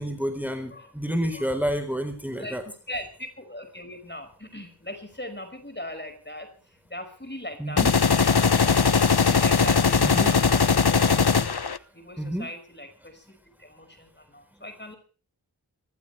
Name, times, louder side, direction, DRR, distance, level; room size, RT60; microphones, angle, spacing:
voice 1, 0.0-2.6 7.6-7.9 10.0-10.3 12.2-12.5, equal, 5° right, 7 dB, 4.2 m, -29 dB
voice 2, 2.3-11.3 11.9-13.3 13.6-15.0, left 1 dB, 25° left, 7 dB, 5.5 m, -40 dB
sound 1, 7.8-11.8, left 5 dB, 75° left, 1.1 m, -20 dB
25.5 x 15.5 x 3.4 m, 0.39 s
wide cardioid pair, 50°, 39 cm